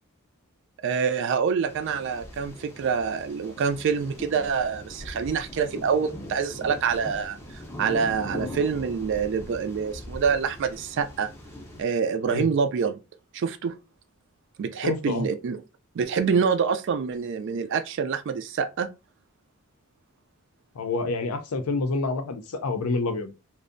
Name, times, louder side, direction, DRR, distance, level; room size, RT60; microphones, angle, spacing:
voice 1, 0.8-7.4 7.8-11.3 11.8-13.0 13.3-13.8 14.6-15.6 15.9-18.9, right 6 dB, 55° right, 0.3 m, -26 dB
sound 1, 1.6-11.8, left 1 dB, 10° left, 0.4 m, -41 dB
voice 2, 14.8-15.3 20.8-23.3, left 3 dB, 80° left, 0.5 m, -28 dB
2.5 x 2.0 x 2.5 m
head